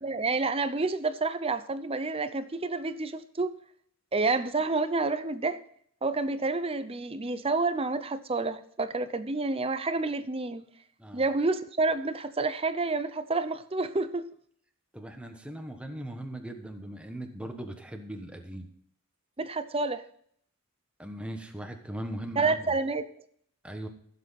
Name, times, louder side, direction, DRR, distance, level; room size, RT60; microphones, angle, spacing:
voice 1, 0.0-3.5 4.1-5.6 6.0-10.7 11.1-14.3 19.4-20.1 22.4-23.1, right 3 dB, 25° right, 0.7 m, -29 dB
voice 2, 14.9-18.7 21.0-22.6 23.6-23.9, right 1 dB, 5° right, 1.3 m, -39 dB
15.5 x 7.7 x 4.2 m
head